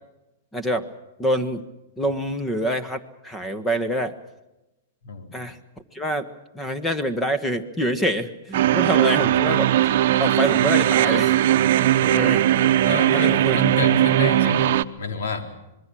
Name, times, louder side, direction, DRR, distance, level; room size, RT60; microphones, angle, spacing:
voice 1, 0.5-0.9 1.2-1.7 2.0-4.1 5.3-5.6 5.9-6.3 6.5-9.7 10.2-11.4 12.1-12.4 13.1-13.6, equal, 10° left, 13 dB, 1.4 m, -26 dB
voice 2, 5.0-5.4 9.2-9.3 12.0-12.2 12.8-14.7 15.0-15.5, left 1 dB, 70° left, 6 dB, 3.5 m, -28 dB
sound 1, 8.5-14.8, right 12 dB, 60° right, 0.8 m, -19 dB
26.5 x 21.0 x 6.3 m, 0.97 s
hypercardioid pair, 150°, 0 cm